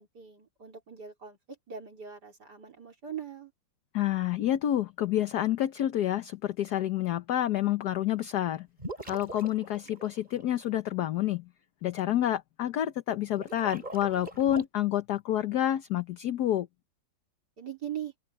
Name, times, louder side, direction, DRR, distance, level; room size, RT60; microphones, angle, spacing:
voice 1, 0.0-3.5 17.6-18.1, right 9 dB, 60° right, 4.4 m, -41 dB
voice 2, 3.9-8.7 9.0-11.4 11.8-16.7, left 12 dB, 65° left, 1.3 m, -28 dB
sound 1, 8.8-10.6 13.3-14.6, right 1 dB, 25° right, 6.1 m, -42 dB
open air
omnidirectional pair, 2.0 m